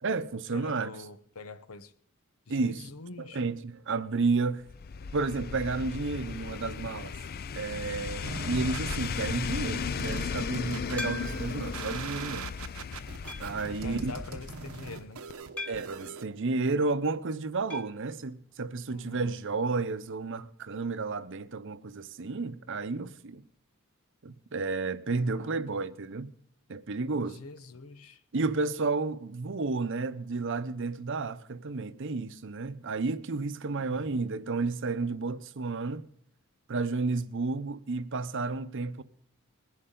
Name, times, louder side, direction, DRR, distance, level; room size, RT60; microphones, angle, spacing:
voice 1, 0.0-0.9 2.5-2.8 3.2-4.7 5.1-7.1 7.5-12.5 13.4-14.1 15.7-23.4 24.2-26.3 26.7-27.4 28.3-36.1 36.7-39.0, right 3 dB, 60° right, 0.8 m, -31 dB
voice 2, 0.5-1.9 2.5-3.4 13.6-15.5 18.9-19.2 25.1-25.8 27.2-28.2 33.8-34.1, left 3 dB, 85° left, 0.9 m, -45 dB
sound 1, 4.7-15.0 15.3-15.4, left 6 dB, 45° left, 0.4 m, -36 dB
sound 2, 8.2-16.2, right 4 dB, 85° right, 1.0 m, -41 dB
sound 3, 11.0-11.7 12.3-12.4 13.3-13.7 15.6-16.0 17.7-18.0 18.3-18.4 18.6-18.7 20.7-20.8, left 2 dB, 5° left, 1.4 m, -40 dB
20.5 x 11.0 x 3.8 m
head